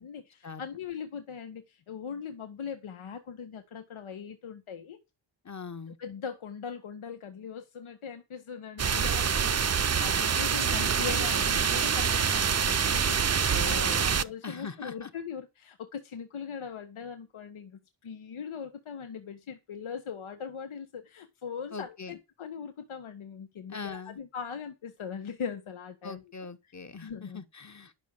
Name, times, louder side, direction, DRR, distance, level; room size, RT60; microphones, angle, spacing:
voice 1, 0.0-5.0 6.0-26.2 27.0-27.4, left 6 dB, 85° left, 1.5 m, -40 dB
voice 2, 5.4-6.0 13.5-15.1 21.7-22.2 23.7-24.2 26.0-27.9, left 4 dB, 35° left, 1.3 m, -41 dB
sound 1, 8.8-14.2, right 7 dB, 35° right, 0.6 m, -26 dB
11.0 x 6.4 x 7.1 m
wide cardioid pair, 105°, 47 cm